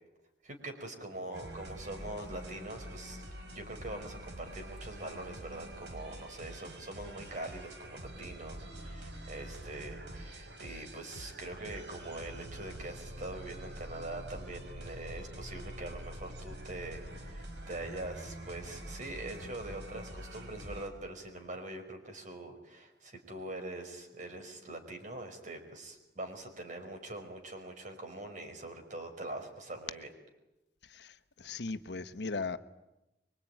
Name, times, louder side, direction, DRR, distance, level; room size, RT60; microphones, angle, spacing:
voice 1, 0.4-3.2 3.5-30.1, right 2 dB, 45° right, 4 dB, 5.2 m, -43 dB
sound 1, 1.3-20.9, right 1 dB, 85° right, 5.2 m, -46 dB
voice 2, 30.8-32.6, left 4 dB, 75° left, 10 dB, 1.1 m, -38 dB
24.5 x 23.5 x 9.2 m, 0.94 s
head